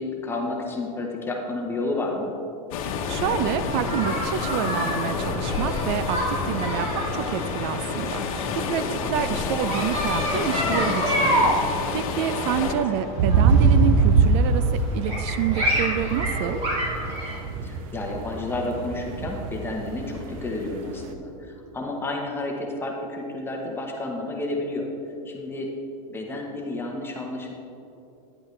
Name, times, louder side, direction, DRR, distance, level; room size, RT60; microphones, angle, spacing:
voice 1, 0.0-2.3 9.0-9.4 12.6-12.8 17.6-24.9 25.2-25.7 26.1-27.5, left 2 dB, 10° left, 0 dB, 1.0 m, -31 dB
sound 1, 2.7-12.7, left 5 dB, 70° left, 1.1 m, -29 dB
voice 2, 2.8-16.6, right 10 dB, 50° right, 12 dB, 0.4 m, -28 dB
sound 2, 3.6-17.4, equal, 30° right, 2.4 m, -29 dB
sound 3, 13.2-21.1, right 4 dB, 70° right, 0.8 m, -23 dB
11.0 x 10.5 x 3.2 m, 2.8 s
supercardioid pair, 155°, 18 cm